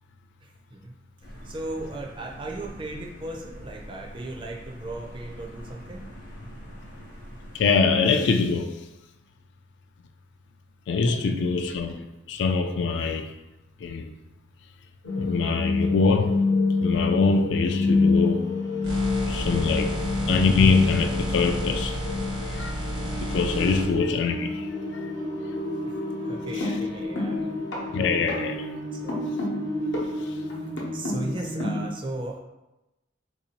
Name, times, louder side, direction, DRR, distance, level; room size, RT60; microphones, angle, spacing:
voice 1, 0.4-1.0 1.4-6.1 11.1-11.5 15.2-15.3 19.9-20.2 25.8-27.6 28.2-28.4 28.9-29.3 30.0-30.1 30.9-32.4, right 2 dB, 25° right, 0.4 m, -37 dB
sound 1, 1.2-7.7, equal, 45° left, 0.7 m, -43 dB
voice 2, 7.5-8.8 10.9-13.3 13.8-14.1 15.2-16.4 16.8-18.4 19.3-20.0 20.3-22.0 22.4-22.7 23.2-25.1 26.5-26.8 27.9-28.6, left 4 dB, 65° left, 0.3 m, -24 dB
sound 2, 15.0-31.9, left 3 dB, 80° left, 0.8 m, -28 dB
sound 3, 18.8-23.9, equal, 90° right, 1.1 m, -31 dB
3.6 x 2.7 x 2.8 m
head